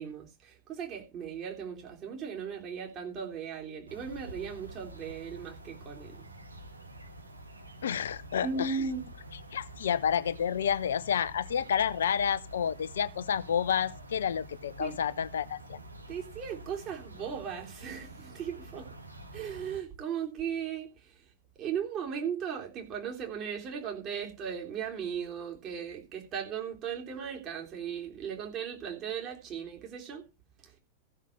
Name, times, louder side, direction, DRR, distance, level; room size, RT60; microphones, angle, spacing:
voice 1, 0.0-6.2 8.4-9.0 14.8-14.9 16.1-18.9 19.3-21.1 21.6-30.2, right 7 dB, 35° right, 3.4 m, -37 dB
sound 1, 3.9-19.8, right 1 dB, 80° right, 1.7 m, -48 dB
voice 2, 7.8-8.8 9.5-15.8, left 8 dB, 65° left, 0.6 m, -30 dB
14.5 x 6.5 x 5.0 m
figure-of-eight pair, 90°, 0 cm